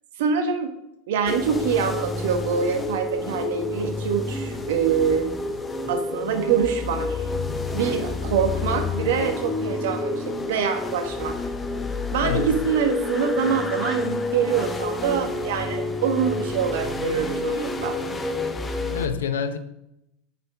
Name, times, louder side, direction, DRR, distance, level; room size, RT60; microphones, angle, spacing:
voice 1, 0.2-0.7 1.1-5.3 5.9-7.3 7.7-11.3 12.1-17.9, right 7 dB, 70° right, 6 dB, 1.0 m, -25 dB
sound 1, 1.3-19.1, left 3 dB, 20° left, 0.9 m, -29 dB
voice 2, 12.2-12.6 18.9-19.6, left 6 dB, 75° left, 11 dB, 0.7 m, -27 dB
7.6 x 4.4 x 6.4 m, 0.82 s
hypercardioid pair, 85°, 0 cm